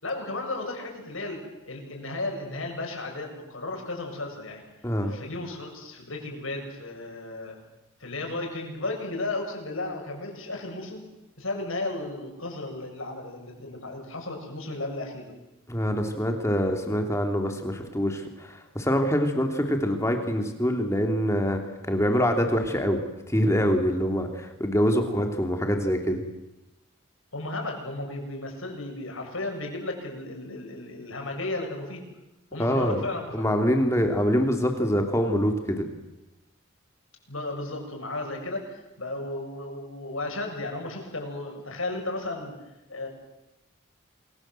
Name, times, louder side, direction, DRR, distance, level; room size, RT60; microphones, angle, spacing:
voice 1, 0.0-4.6 5.0-7.6 8.0-11.1 11.4-15.3 25.1-25.3 27.3-32.0 32.5-33.5 37.3-42.5 42.9-43.1, left 2 dB, 75° left, 1 dB, 7.6 m, -34 dB
voice 2, 4.8-5.2 15.7-21.6 21.9-23.0 23.3-26.2 32.6-33.1 33.3-35.8, equal, 15° left, 4 dB, 3.0 m, -25 dB
29.0 x 22.0 x 7.7 m, 0.96 s
head